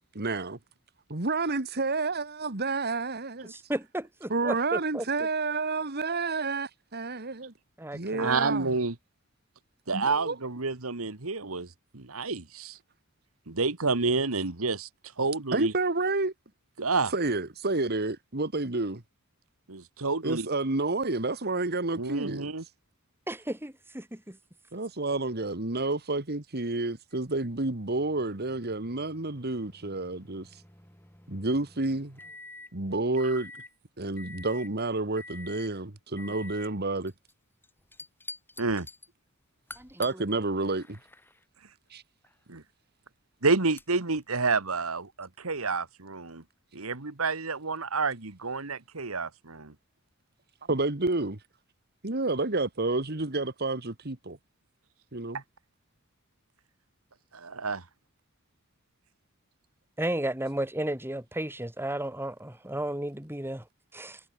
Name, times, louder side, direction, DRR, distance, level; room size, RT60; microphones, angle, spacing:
voice 1, 0.1-0.6 1.1-3.5 4.3-7.5 7.9-8.7 9.9-10.4 15.5-16.3 17.1-19.0 20.2-22.5 24.7-30.6 31.3-32.2 32.7-33.5 34.0-37.1 40.0-41.0 41.9-42.0 50.7-51.3 52.0-54.4 55.1-55.4, right 3 dB, 50° right, 2.0 m, -30 dB
voice 2, 3.5-5.0 7.8-8.3 23.3-24.4 39.8-40.0 60.0-63.6 63.9-64.2, right 1 dB, 10° right, 3.6 m, -33 dB
voice 3, 8.2-8.9 9.9-12.8 13.5-14.9 15.2-15.7 16.8-17.1 19.7-20.5 22.0-22.6 38.6-38.9 42.5-42.6 43.4-46.4 46.7-49.7 57.3-57.8, right 4 dB, 75° right, 1.8 m, -29 dB
sound 1, 27.1-32.7 33.2-33.7 34.2-34.7 35.2-35.7 36.2-36.7 37.1-37.3 37.6-39.1 39.7-40.1 40.6-41.4 42.2-42.3 43.8-43.9, left 2 dB, 10° left, 6.9 m, -48 dB
head